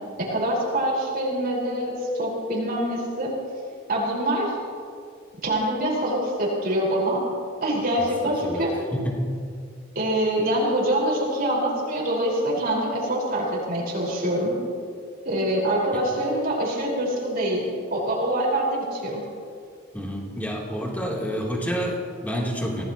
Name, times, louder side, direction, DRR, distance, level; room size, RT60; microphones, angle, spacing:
voice 1, 0.2-3.3 3.9-4.5 5.4-7.2 7.6-8.7 9.9-14.5 15.2-19.2, right 1 dB, 50° right, -4 dB, 5.0 m, -25 dB
voice 2, 8.2-8.6 8.9-9.3 15.9-16.0 19.9-22.8, equal, 10° left, -3 dB, 3.3 m, -29 dB
25.5 x 18.0 x 3.1 m, 2.3 s
head